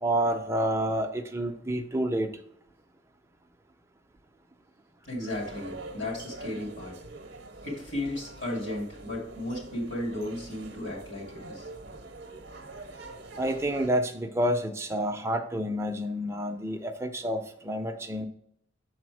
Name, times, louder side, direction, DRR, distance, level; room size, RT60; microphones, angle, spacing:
voice 1, 0.0-2.3 13.3-18.3, right 1 dB, 15° right, 4 dB, 0.6 m, -29 dB
voice 2, 5.0-7.0 7.6-11.7, left 1 dB, 65° left, -3 dB, 2.6 m, -34 dB
sound 1, 5.3-13.9, right 2 dB, 55° right, 0.7 m, -45 dB
6.7 x 4.2 x 4.7 m, 0.69 s
head